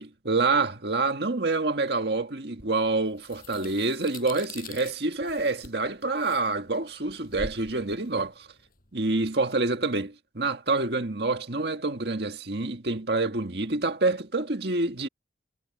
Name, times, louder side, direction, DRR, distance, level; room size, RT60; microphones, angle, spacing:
voice 1, 0.0-8.5 8.9-15.1, right 3 dB, 60° right, 1.9 m, -27 dB
sound 1, 2.6-9.4, left 3 dB, 50° left, 7.8 m, -45 dB
head